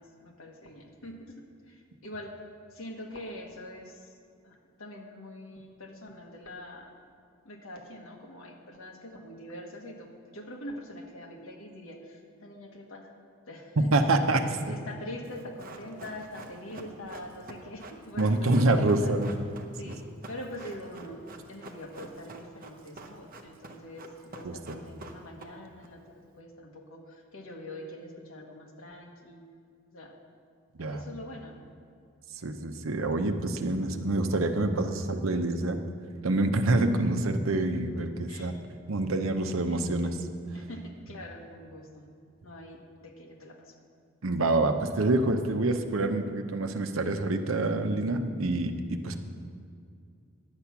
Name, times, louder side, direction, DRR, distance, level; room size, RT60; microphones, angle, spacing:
voice 1, 0.0-2.3 2.7-4.1 4.4-6.9 7.4-13.1 13.5-19.1 19.7-29.5 29.9-30.1 30.8-31.6 36.9-37.1 38.3-38.5 39.7-40.2 40.5-42.1 42.4-43.7 49.1-49.2, left 1 dB, 85° left, 1 dB, 1.5 m, -44 dB
voice 2, 13.9-14.4 18.2-19.3 24.4-24.8 30.8-31.0 32.4-35.8 36.2-38.5 38.9-40.1 44.2-49.2, right 2 dB, 80° right, 7 dB, 0.8 m, -26 dB
Run, 15.2-25.9 26.1-26.2, right 2 dB, 45° right, 0.9 m, -47 dB
10.5 x 8.4 x 5.9 m, 2.4 s
head